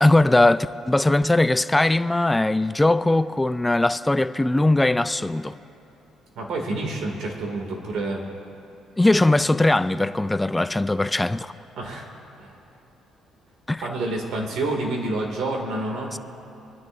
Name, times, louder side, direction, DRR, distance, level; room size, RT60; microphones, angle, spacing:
voice 1, 0.0-5.6 9.0-11.5 13.7-13.8 16.1-16.2, left 2 dB, 10° left, 0.3 m, -20 dB
voice 2, 6.4-8.2 11.8-12.1 12.4-12.5 13.8-16.1, right 2 dB, 75° right, 2.4 m, -28 dB
26.5 x 10.5 x 2.7 m
cardioid pair, 115°, 0 cm